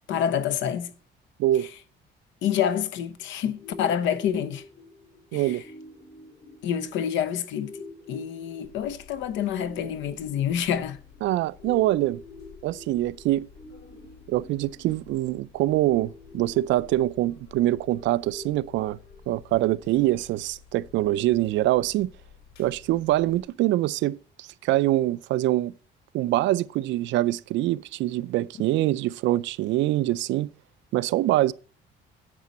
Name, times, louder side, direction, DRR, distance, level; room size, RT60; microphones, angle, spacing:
voice 1, 0.1-0.9 2.4-4.6 5.3-5.6 6.6-11.0, left 9 dB, 90° left, 1.0 m, -27 dB
sound 1, 3.6-19.5, left 3 dB, 45° left, 3.6 m, -48 dB
voice 2, 5.3-5.6 11.2-12.2 12.6-13.5 14.3-19.0 19.3-22.1 22.6-25.7 26.1-30.5 30.9-31.5, right 15 dB, 80° right, 0.5 m, -24 dB
sound 2, 8.6-23.4, left 7 dB, 65° left, 5.2 m, -52 dB
9.7 x 7.5 x 4.1 m
cardioid pair, 160°, 19 cm